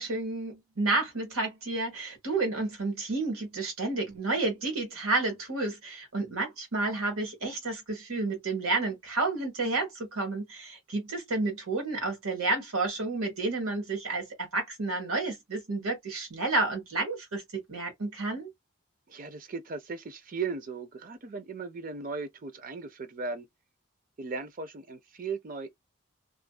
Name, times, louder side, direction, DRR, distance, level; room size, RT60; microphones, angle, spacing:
voice 1, 0.0-17.4 17.7-18.5, right 3 dB, 90° right, 1.4 m, -30 dB
voice 2, 19.1-23.5 24.2-25.7, right 4 dB, 40° right, 0.5 m, -37 dB
2.5 x 2.5 x 2.2 m
head